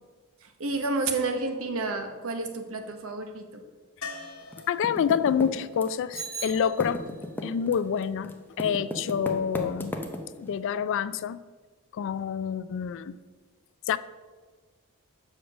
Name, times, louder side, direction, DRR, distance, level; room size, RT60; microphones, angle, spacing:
voice 1, 0.4-3.6, right 3 dB, 65° right, 6 dB, 0.9 m, -30 dB
sound 1, 4.0-7.9 10.6-10.7 10.9-11.0, left 4 dB, 85° left, 1.3 m, -45 dB
Typing, 4.5-6.2 6.5-10.5, left 1 dB, 10° left, 0.6 m, -35 dB
voice 2, 4.7-7.0 7.4-10.0 10.4-11.4 11.9-13.2 13.9-14.0, left 7 dB, 60° left, 15 dB, 0.3 m, -27 dB
Bicycle bell, 6.1-7.4, right 5 dB, 50° right, 2.1 m, -39 dB
6.5 x 4.9 x 6.2 m, 1.4 s
head